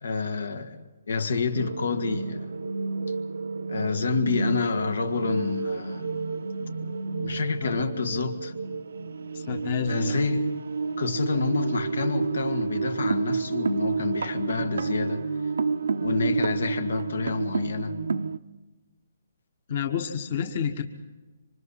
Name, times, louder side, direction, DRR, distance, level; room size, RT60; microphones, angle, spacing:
voice 1, 0.0-2.5 3.7-6.1 7.2-8.5 9.9-10.6 11.0-15.2 16.0-18.0, left 4 dB, 75° left, 1.9 m, -28 dB
sound 1, 1.5-18.4, right 4 dB, 75° right, 0.8 m, -30 dB
voice 2, 9.3-10.2 19.7-20.8, left 7 dB, 30° left, 1.3 m, -29 dB
27.0 x 25.0 x 4.2 m
hypercardioid pair, 175°, 0 cm